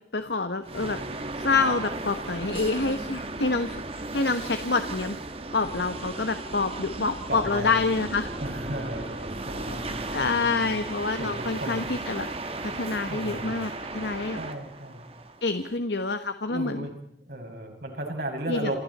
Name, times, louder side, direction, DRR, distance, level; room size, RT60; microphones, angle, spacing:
voice 1, 0.1-5.2 5.5-8.3 9.7-12.3 12.6-14.4 15.4-16.9 18.5-18.7, left 3 dB, 75° left, 9 dB, 1.3 m, -27 dB
sound 1, 0.6-15.8, right 2 dB, 35° right, 1.8 m, -36 dB
voice 2, 7.3-7.8 8.4-9.9 10.2-10.5 11.2-11.8 13.1-13.6 14.3-15.0 16.5-16.9 17.3-18.8, right 1 dB, 60° right, 2 dB, 6.8 m, -34 dB
28.5 x 27.5 x 4.3 m, 0.71 s
head